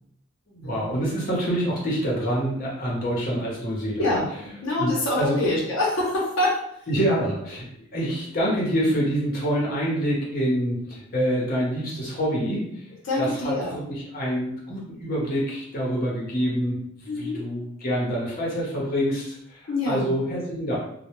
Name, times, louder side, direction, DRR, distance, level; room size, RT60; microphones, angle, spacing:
voice 1, 0.5-4.0 4.8-5.4 6.9-7.7 7.9-12.8 13.2-20.8, equal, 50° left, -5 dB, 0.8 m, -26 dB
voice 2, 4.0-6.6 13.0-13.8 17.1-17.4 19.7-20.1, left 2 dB, 80° left, -4 dB, 0.7 m, -25 dB
2.2 x 2.1 x 3.0 m, 0.73 s
head